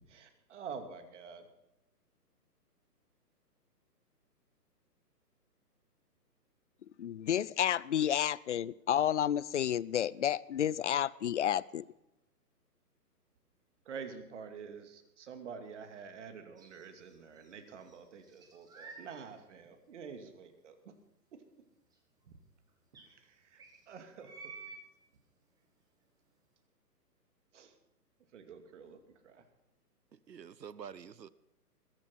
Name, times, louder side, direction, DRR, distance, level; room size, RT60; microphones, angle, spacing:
voice 1, 0.1-1.5 13.9-20.9 21.3-21.4 22.2-22.4 23.1-24.5 27.5-27.7 28.3-29.4, right 6 dB, 45° right, 6 dB, 2.6 m, -48 dB
voice 2, 7.0-11.8, left 10 dB, 50° left, 22 dB, 0.5 m, -31 dB
sound 1, 16.6-17.5 17.8-19.1 19.6-19.7 21.9-22.0 22.2-22.3 22.9-23.0 23.6-24.8, right 4 dB, 10° right, 1.9 m, -51 dB
voice 3, 30.1-31.3, right 7 dB, 90° right, 18 dB, 0.9 m, -48 dB
21.5 x 9.3 x 5.9 m, 0.92 s
hypercardioid pair, 145°, 49 cm